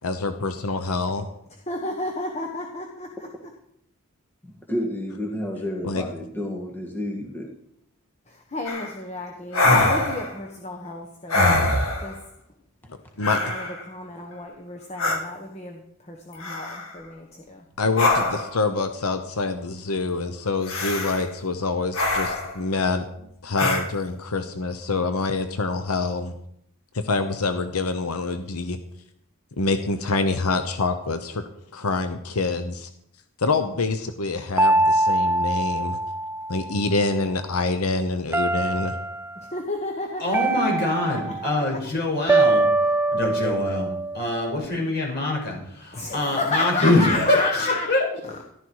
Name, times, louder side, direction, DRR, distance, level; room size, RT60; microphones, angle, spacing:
voice 1, 0.0-1.3 5.8-6.0 12.9-13.4 17.8-23.1 23.4-26.3 26.9-28.8 29.6-31.4 31.7-32.9 33.4-36.0 36.5-38.9, left 3 dB, 90° left, 9 dB, 1.0 m, -26 dB
voice 2, 1.7-3.3 8.3-11.7 12.0-12.2 13.4-17.6 39.4-41.5 45.9-47.9 48.2-48.4, left 2 dB, 30° left, 2 dB, 1.3 m, -31 dB
voice 3, 4.4-7.5 11.4-11.5, left 1 dB, 10° left, -1 dB, 1.9 m, -30 dB
sound 1, 8.7-8.9 9.5-10.4 11.3-12.2 13.2-13.8 15.0-15.2 16.4-16.9 18.0-18.6 20.7-21.3 21.9-22.6 23.6-23.9, left 2 dB, 65° left, 2.3 m, -23 dB
sound 2, 34.6-36.9 38.3-39.3 40.3-41.6 42.3-44.7, right 2 dB, 10° right, 0.4 m, -23 dB
voice 4, 40.2-42.7 43.1-48.1, left 2 dB, 45° left, -1 dB, 5.8 m, -24 dB
13.5 x 12.5 x 4.8 m, 0.74 s
head